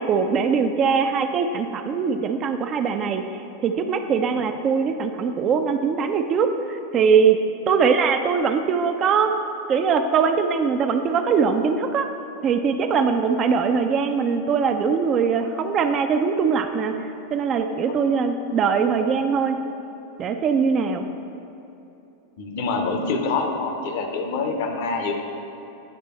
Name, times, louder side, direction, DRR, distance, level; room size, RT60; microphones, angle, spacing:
voice 1, 0.0-3.2 3.6-7.4 7.7-9.3 9.7-12.1 12.4-16.9 17.3-19.6 20.2-21.1, right 6 dB, 30° right, 7 dB, 0.3 m, -21 dB
voice 2, 22.4-25.1, left 4 dB, 50° left, 3 dB, 0.7 m, -25 dB
9.7 x 3.3 x 4.2 m, 2.9 s
figure-of-eight pair, 90°, 0 cm